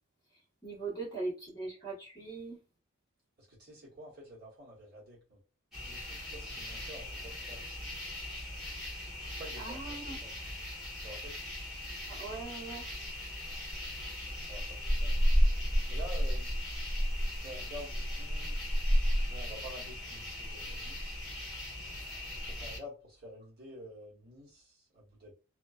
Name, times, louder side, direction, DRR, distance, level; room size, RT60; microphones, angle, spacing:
voice 1, 0.6-2.6 9.6-10.2 12.1-12.9, right 3 dB, 15° left, 1.2 m, -40 dB
voice 2, 3.4-5.4 5.8-7.6 9.2-10.3 11.0-11.4 14.2-15.3 15.9-16.5 17.3-18.6 19.3-21.2 22.3-25.3, equal, 45° right, 1.1 m, -49 dB
sound 1, 5.7-22.8, equal, ahead, 1.0 m, -34 dB
2.5 x 2.3 x 2.3 m
head